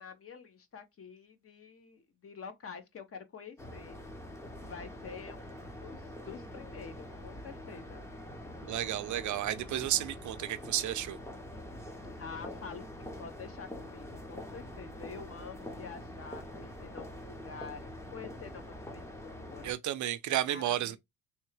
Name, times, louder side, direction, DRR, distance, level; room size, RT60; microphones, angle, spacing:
voice 1, 0.0-4.0 4.6-8.0 12.2-19.7 20.3-21.0, left 6 dB, 40° left, 0.8 m, -48 dB
sound 1, 3.6-19.7, left 1 dB, 10° left, 0.6 m, -45 dB
voice 2, 8.7-11.2 19.6-21.0, right 12 dB, 60° right, 0.5 m, -32 dB
3.5 x 3.2 x 3.2 m
cardioid pair, 165°, 35 cm